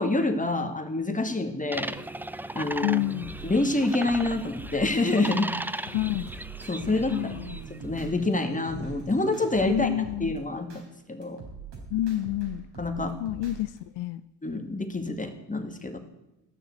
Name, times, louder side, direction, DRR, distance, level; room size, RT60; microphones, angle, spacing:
voice 1, 0.0-1.9 2.6-3.0 3.4-5.5 6.7-7.1 7.8-9.9 10.2-10.8 11.1-11.4 12.8-13.2 14.4-16.0, left 2 dB, 15° left, 6 dB, 2.0 m, -27 dB
sound 1, 1.7-7.8, right 1 dB, 5° right, 0.5 m, -37 dB
voice 2, 2.8-3.4 5.9-6.3 7.1-7.6 9.7-10.4 11.9-12.7 13.2-14.2, left 15 dB, 75° left, 14 dB, 0.6 m, -29 dB
sound 2, 3.2-5.4 5.8-8.3 8.6-10.8 11.2-13.8, right 5 dB, 70° right, 4.1 m, -43 dB
sound 3, 6.8-10.3, right 3 dB, 40° right, 1.4 m, -45 dB
13.5 x 6.3 x 8.2 m, 0.95 s
hypercardioid pair, 50°, 44 cm